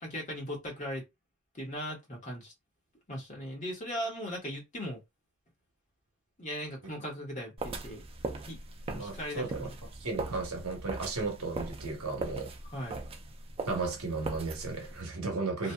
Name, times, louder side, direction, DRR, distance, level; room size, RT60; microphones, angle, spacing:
voice 1, 0.0-1.0 1.5-2.5 3.1-5.0 6.4-8.0 8.4-8.6 8.9-9.7 12.7-13.0 15.6-15.7, equal, 35° left, 1.3 m, -38 dB
sound 1, 7.6-15.0, right 2 dB, 25° right, 0.3 m, -40 dB
voice 2, 8.9-9.7 10.0-12.5 13.6-15.7, right 3 dB, 80° right, 1.0 m, -35 dB
2.7 x 2.5 x 2.2 m
head